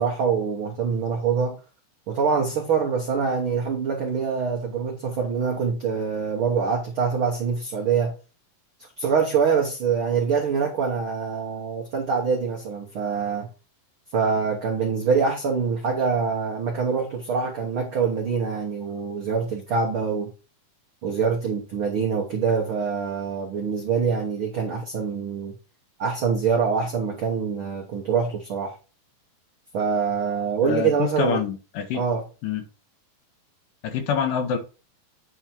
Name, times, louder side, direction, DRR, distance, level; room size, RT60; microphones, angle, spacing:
voice 1, 0.0-1.6 2.1-8.1 9.0-13.5 14.1-20.3 21.0-25.5 26.0-28.8 29.7-31.4 31.9-32.2, right 6 dB, 85° right, 1.1 m, -24 dB
voice 2, 30.6-32.0 32.4-32.6 33.8-34.6, left 6 dB, 75° left, 2.6 m, -26 dB
8.7 x 3.7 x 4.4 m
omnidirectional pair, 4.1 m